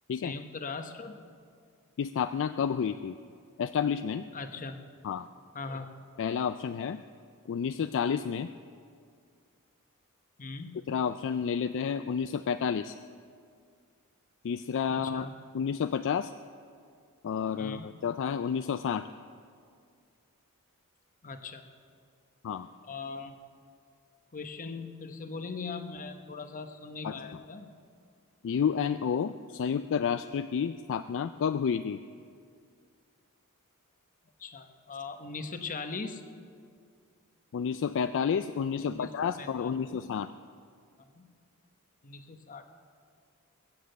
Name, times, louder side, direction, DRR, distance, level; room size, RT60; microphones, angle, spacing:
voice 1, 0.2-1.1 4.3-4.8 5.5-5.9 10.4-10.8 14.9-15.3 17.6-17.9 21.2-21.6 22.9-23.3 24.3-27.7 34.4-36.2 38.8-39.1 39.4-40.0 41.1-41.3 42.0-42.6, left 4 dB, 40° left, 8 dB, 0.9 m, -40 dB
voice 2, 2.0-3.2 3.6-4.3 5.0-5.3 6.2-7.0 7.5-8.5 10.9-13.0 14.4-15.3 15.5-16.3 17.2-19.1 22.4-22.7 27.0-27.2 28.4-32.0 37.5-40.3, left 7 dB, 60° left, 11 dB, 0.3 m, -30 dB
21.0 x 7.5 x 7.9 m, 2.2 s
head